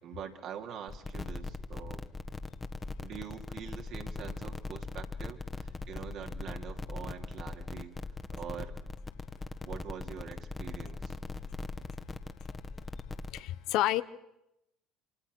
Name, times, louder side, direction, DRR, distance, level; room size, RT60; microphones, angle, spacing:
voice 1, 0.0-2.1 3.0-7.9 8.3-8.8 9.6-11.2, right 8 dB, 60° right, 4 dB, 2.8 m, -44 dB
sound 1, 0.9-13.4, left 3 dB, 25° left, 1.6 m, -40 dB
voice 2, 13.3-14.0, left 15 dB, 65° left, 14 dB, 0.9 m, -29 dB
27.5 x 26.0 x 6.2 m, 0.88 s
hypercardioid pair, 65°, 0 cm